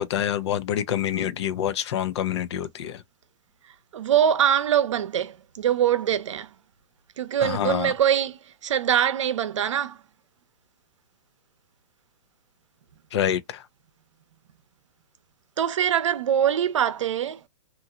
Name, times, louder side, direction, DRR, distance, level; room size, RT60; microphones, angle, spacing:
voice 1, 0.0-3.0 7.4-7.9 13.1-13.6, left 10 dB, 65° left, 0.6 m, -26 dB
voice 2, 3.9-6.5 7.2-10.0 15.6-17.4, right 9 dB, 85° right, 0.6 m, -23 dB
2.8 x 2.5 x 2.4 m
hypercardioid pair, 145°, 15 cm